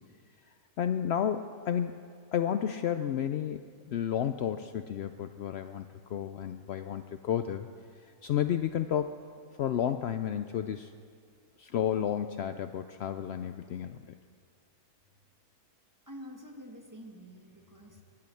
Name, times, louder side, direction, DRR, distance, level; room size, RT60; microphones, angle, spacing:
voice 1, 0.8-2.0 2.3-7.7 8.2-9.2 9.6-10.9 11.6-14.1, left 9 dB, 80° left, 9 dB, 0.5 m, -31 dB
voice 2, 16.1-18.0, equal, 10° right, 2 dB, 1.3 m, -47 dB
21.5 x 8.5 x 7.7 m, 2.1 s
omnidirectional pair, 1.7 m